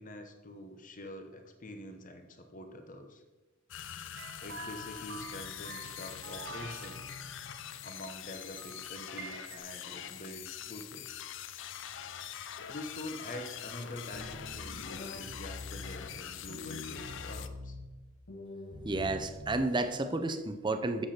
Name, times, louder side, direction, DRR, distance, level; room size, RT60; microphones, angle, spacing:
voice 1, 0.0-3.2 4.4-7.1 7.8-11.1 12.7-17.8, left 1 dB, 40° left, 5 dB, 1.0 m, -45 dB
sound 1, 3.7-17.5, left 9 dB, 65° left, 0.5 m, -44 dB
sound 2, 4.2-9.6, right 3 dB, 60° right, 0.8 m, -48 dB
sound 3, 14.1-16.1 16.5-17.9 18.3-19.9, left 2 dB, 90° left, 1.4 m, -44 dB
voice 2, 18.8-21.1, right 2 dB, 25° right, 9 dB, 0.6 m, -31 dB
7.8 x 7.6 x 4.4 m, 1.2 s
head